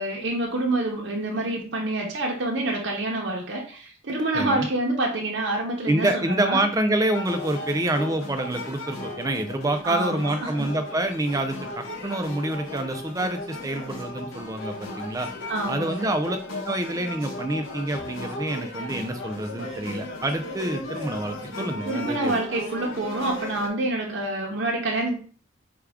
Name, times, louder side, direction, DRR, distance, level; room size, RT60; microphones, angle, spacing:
voice 1, 0.0-6.6 9.8-10.7 15.5-16.1 21.8-25.1, right 2 dB, 60° right, -1 dB, 0.8 m, -27 dB
voice 2, 4.3-4.7 5.9-15.3 15.7-16.4 16.6-22.3, right 1 dB, 15° right, 7 dB, 0.4 m, -27 dB
sound 1, 7.1-23.7, left 2 dB, 85° left, 1.1 m, -36 dB
4.7 x 2.3 x 3.5 m, 0.41 s
head